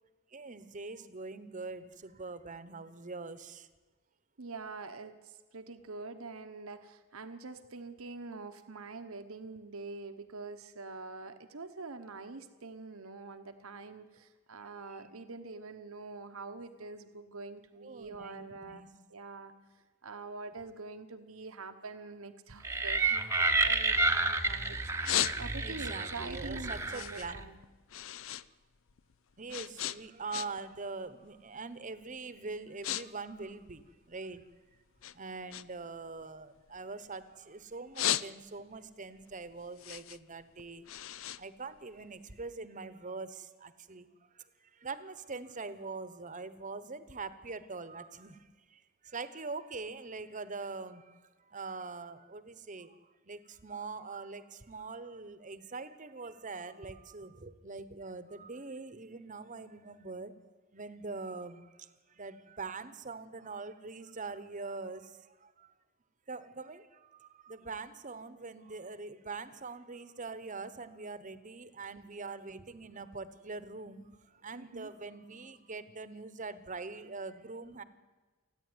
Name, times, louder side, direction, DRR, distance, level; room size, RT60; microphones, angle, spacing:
voice 1, 0.3-3.7 14.9-15.0 17.8-18.9 25.6-27.4 29.4-34.4 35.1-40.9 41.4-44.1 44.3-51.2 51.5-60.3 60.7-65.7 66.3-77.8, right 4 dB, 35° right, 13 dB, 1.0 m, -43 dB
voice 2, 4.4-18.8 19.1-19.5 20.0-27.6 74.5-74.9, right 3 dB, 75° right, 8 dB, 1.1 m, -45 dB
sound 1, 22.6-27.5, right 3 dB, 15° right, 0.9 m, -30 dB
sound 2, 23.3-24.4 24.8-25.8 26.3-28.5 28.7-30.8 31.1-31.4 32.0-32.2 32.5-33.0 33.3-34.5 35.0-37.3 37.7-38.8 39.2-42.3, left 12 dB, 65° left, 0.5 m, -36 dB
28.0 x 10.0 x 9.6 m, 1.3 s
head